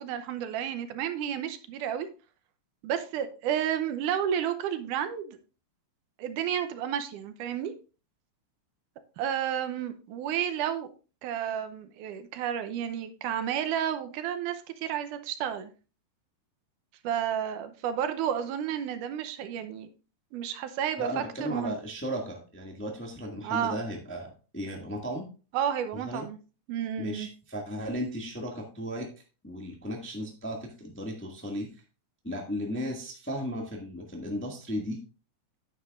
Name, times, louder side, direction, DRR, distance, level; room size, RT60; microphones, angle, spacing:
voice 1, 0.0-2.1 2.8-5.4 6.2-7.7 9.2-10.9 11.2-15.7 17.0-19.9 20.3-21.8 23.4-23.8 25.5-26.4 26.7-27.3, right 9 dB, 85° right, 9 dB, 2.3 m, -31 dB
voice 2, 21.0-25.3 25.9-26.3 26.9-29.1 29.4-31.7 32.2-35.0, equal, 10° left, 0 dB, 0.7 m, -35 dB
9.5 x 8.9 x 2.5 m, 0.34 s
omnidirectional pair, 3.6 m